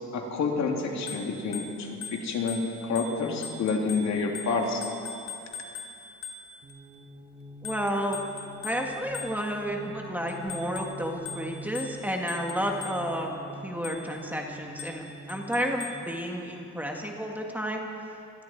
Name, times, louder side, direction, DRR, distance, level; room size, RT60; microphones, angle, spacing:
voice 1, 0.1-4.8, left 4 dB, 55° left, 0 dB, 3.1 m, -29 dB
Bicycle bell, 0.9-6.8 7.6-9.7 10.3-13.3 13.8-14.3 14.8-16.1, left 5 dB, 75° left, 2.9 m, -42 dB
sound 1, 6.6-16.0, right 3 dB, 30° right, 5.0 m, -46 dB
voice 2, 7.6-8.2 8.6-13.3 13.6-17.9, equal, 5° right, 0 dB, 1.7 m, -31 dB
27.0 x 21.5 x 4.6 m, 2.7 s
cardioid pair, 140°, 33 cm